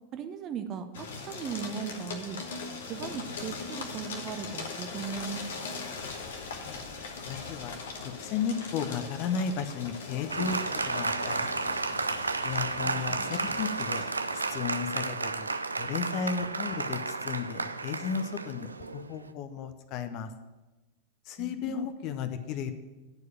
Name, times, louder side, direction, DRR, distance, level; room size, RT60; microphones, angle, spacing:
voice 1, 0.1-2.4 2.9-5.8 12.8-13.3 21.4-21.8, right 7 dB, 30° right, 8 dB, 0.7 m, -38 dB
sound 1, 0.9-14.7, left 4 dB, 60° left, 1.1 m, -40 dB
voice 2, 7.3-11.7 12.4-15.5 15.8-20.3 21.3-22.7, left 6 dB, 40° left, 9 dB, 0.7 m, -34 dB
Applause, 10.3-19.3, right 3 dB, 80° right, 0.4 m, -32 dB
9.6 x 4.7 x 7.0 m, 1.1 s
figure-of-eight pair, 90°, 0 cm